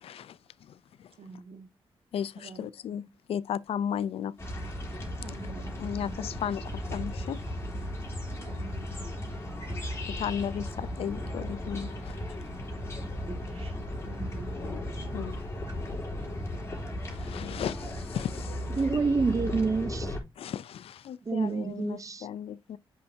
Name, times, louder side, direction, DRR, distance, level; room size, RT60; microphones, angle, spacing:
voice 1, 0.0-0.7 1.0-1.1 2.1-3.0 3.3-4.3 5.8-6.6 6.9-7.4 10.1-12.2 14.6-14.8 15.1-15.4 17.1-18.7 20.4-22.8, left 9 dB, 80° left, 0.4 m, -35 dB
voice 2, 1.2-1.7 2.3-3.1 5.2-6.4 8.4-8.9 13.3-14.5, right 4 dB, 75° right, 1.7 m, -47 dB
sound 1, 4.4-20.2, left 1 dB, 25° left, 3.0 m, -36 dB
voice 3, 18.7-20.2 21.3-22.3, right 4 dB, 35° right, 0.6 m, -28 dB
8.4 x 5.5 x 2.7 m
cardioid pair, 85°, 10 cm